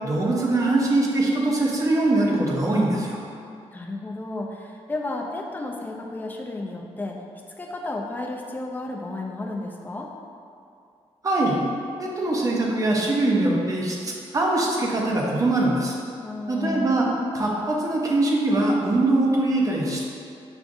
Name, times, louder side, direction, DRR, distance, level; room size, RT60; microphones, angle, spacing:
voice 1, 0.0-3.2 11.2-11.6 12.0-15.9 16.5-17.1 17.3-20.0, right 2 dB, 30° right, -2 dB, 0.6 m, -22 dB
voice 2, 3.7-7.2 7.6-10.1 16.2-17.0, left 2 dB, 15° left, 0 dB, 0.3 m, -32 dB
5.9 x 2.5 x 2.5 m, 2.5 s
wide cardioid pair, 150°, 11 cm